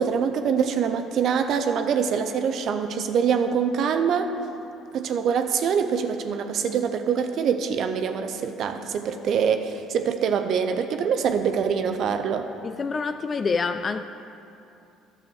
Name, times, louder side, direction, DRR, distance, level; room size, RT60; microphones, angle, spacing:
voice 1, 0.0-4.3 4.9-12.5, right 7 dB, 60° right, 7 dB, 0.5 m, -24 dB
voice 2, 12.6-14.0, left 4 dB, 40° left, 9 dB, 0.3 m, -26 dB
11.0 x 7.0 x 4.6 m, 2.7 s
hypercardioid pair, 60°, 0 cm